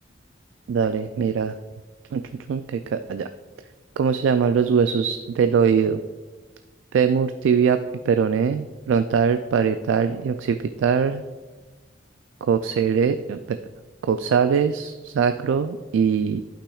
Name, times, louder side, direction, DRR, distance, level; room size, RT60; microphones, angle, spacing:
voice 1, 0.7-1.5 2.1-2.2 2.5-3.3 4.0-6.0 6.9-7.8 8.1-11.2 12.5-13.6 14.0-16.4, right 6 dB, 85° right, 9 dB, 0.3 m, -21 dB
11.5 x 5.8 x 2.3 m, 1.3 s
head